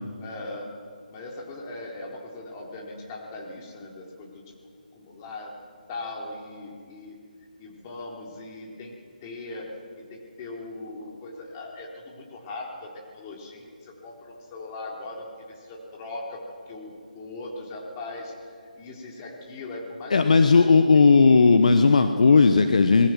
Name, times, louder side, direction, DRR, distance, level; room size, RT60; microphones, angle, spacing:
voice 1, 0.2-0.8 1.1-4.4 4.9-5.5 5.9-7.2 7.6-8.9 9.2-20.2, left 2 dB, 25° left, -1 dB, 4.0 m, -39 dB
voice 2, 20.1-23.1, left 4 dB, 55° left, 8 dB, 1.1 m, -16 dB
26.5 x 21.5 x 6.2 m, 2.1 s
figure-of-eight pair, 145°, 5 cm